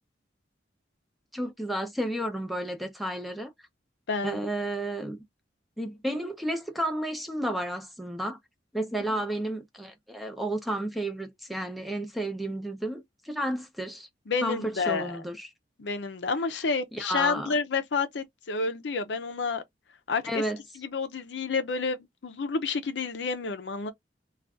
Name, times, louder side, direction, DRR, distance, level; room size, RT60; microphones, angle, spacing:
voice 1, 1.3-3.5 4.2-5.2 5.8-8.4 8.7-14.1 14.4-15.5 16.9-17.5 20.3-20.6, right 1 dB, ahead, 0.6 m, -32 dB
voice 2, 4.1-4.4 9.1-9.2 14.3-15.2 15.8-19.6 20.1-20.4 20.8-23.9, left 4 dB, 80° left, 0.5 m, -30 dB
2.5 x 2.3 x 3.5 m
head